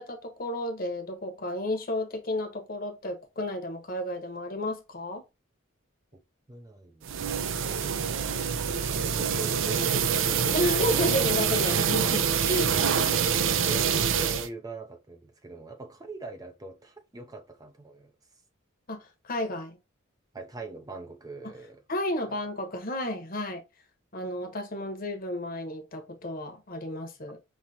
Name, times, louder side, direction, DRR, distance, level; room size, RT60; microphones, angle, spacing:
voice 1, 0.0-5.2 10.5-12.7 18.9-19.8 21.9-23.6 24.1-27.4, left 1 dB, 45° left, 1.1 m, -32 dB
voice 2, 6.5-8.6 9.0-11.0 13.6-18.1 20.3-21.8 22.3-22.4, right 3 dB, 20° right, 0.5 m, -42 dB
sound 1, 7.0-14.5, right 7 dB, 70° right, 0.5 m, -26 dB
5.4 x 2.9 x 2.8 m
head